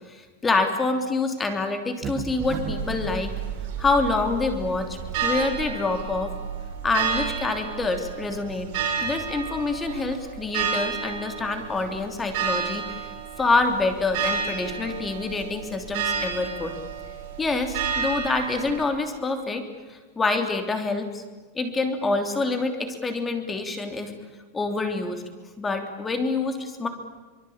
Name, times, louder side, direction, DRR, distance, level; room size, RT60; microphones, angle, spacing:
voice 1, 0.1-3.4 3.8-6.4 6.8-8.7 9.0-12.9 13.4-16.7 17.4-19.6 19.9-21.2 21.5-24.1 24.5-25.2 25.6-26.9, left 3 dB, 15° left, 6 dB, 3.2 m, -26 dB
sound 1, 2.0-3.1, right 6 dB, 25° right, 2.2 m, -34 dB
sound 2, 2.4-18.8, right 6 dB, 55° right, 7.6 m, -31 dB
25.0 x 23.0 x 8.8 m, 1.3 s
supercardioid pair, 150°, 0 cm